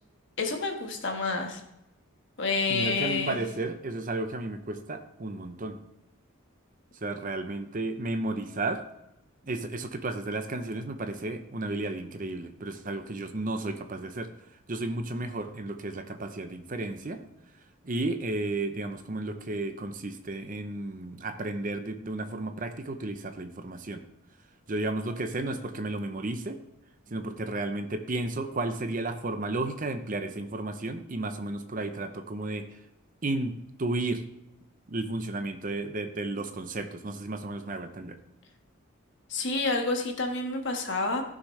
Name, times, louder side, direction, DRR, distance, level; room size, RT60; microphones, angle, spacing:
voice 1, 0.4-1.6 2.4-3.4 39.3-41.2, left 3 dB, 55° left, 3 dB, 1.5 m, -28 dB
voice 2, 2.7-5.8 7.0-8.8 9.5-14.3 14.7-17.2 17.8-24.0 24.7-26.6 27.1-32.7 33.2-33.5 33.8-34.2 34.9-38.2, right 2 dB, 40° right, 8 dB, 0.7 m, -33 dB
15.0 x 6.3 x 3.3 m, 0.88 s
head